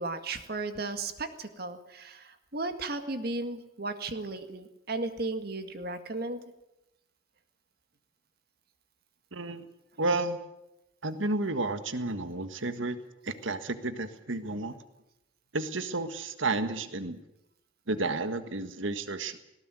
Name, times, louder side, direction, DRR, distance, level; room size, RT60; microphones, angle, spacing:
voice 1, 0.0-6.4, right 2 dB, 50° right, 8 dB, 2.0 m, -35 dB
voice 2, 9.3-9.6 10.0-10.4 11.0-13.0 13.2-14.7 15.5-17.2 17.9-19.4, right 2 dB, 80° right, 10 dB, 1.6 m, -31 dB
19.0 x 18.0 x 9.2 m, 0.88 s
head